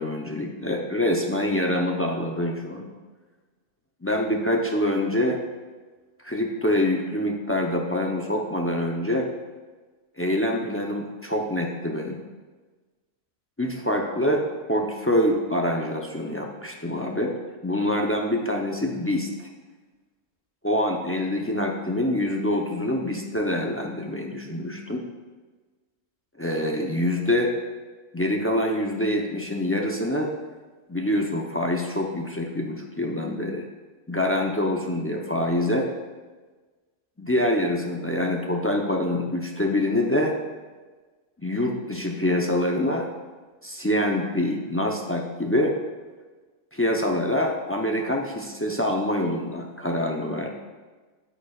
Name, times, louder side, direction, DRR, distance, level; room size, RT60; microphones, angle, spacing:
voice 1, 0.0-2.9 4.0-5.4 6.2-9.3 10.2-12.2 13.6-14.4 14.7-17.3 17.6-19.5 20.6-25.0 26.4-27.5 28.1-30.3 30.9-33.7 34.1-35.9 37.2-40.4 41.4-43.1 43.6-45.7 46.7-50.5, left 1 dB, 20° left, 1 dB, 0.3 m, -25 dB
9.9 x 8.9 x 2.4 m, 1.3 s
omnidirectional pair, 1.4 m